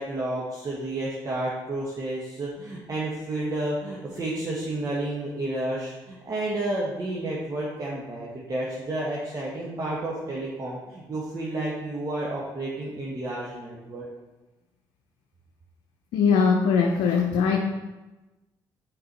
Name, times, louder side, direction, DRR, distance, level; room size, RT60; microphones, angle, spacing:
voice 1, 0.0-14.0, right 1 dB, 40° right, -5 dB, 1.6 m, -31 dB
voice 2, 16.1-17.6, left 6 dB, 80° left, 1 dB, 0.6 m, -21 dB
6.7 x 4.6 x 4.3 m, 1.1 s
supercardioid pair, 60°, 9 cm